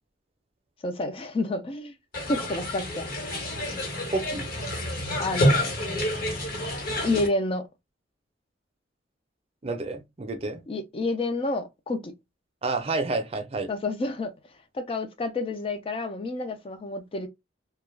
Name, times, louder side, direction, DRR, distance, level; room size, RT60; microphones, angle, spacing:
voice 1, 0.8-1.9 2.3-3.1 5.2-5.7 7.0-7.6 10.7-12.1 13.7-14.3 14.7-17.3, left 2 dB, 30° left, 0.4 m, -29 dB
sound 1, 2.1-7.3, left 1 dB, 50° left, 1.2 m, -28 dB
voice 2, 4.1-4.5 9.6-10.6 12.6-13.7, right 3 dB, 35° right, 0.5 m, -29 dB
2.3 x 2.1 x 3.2 m
head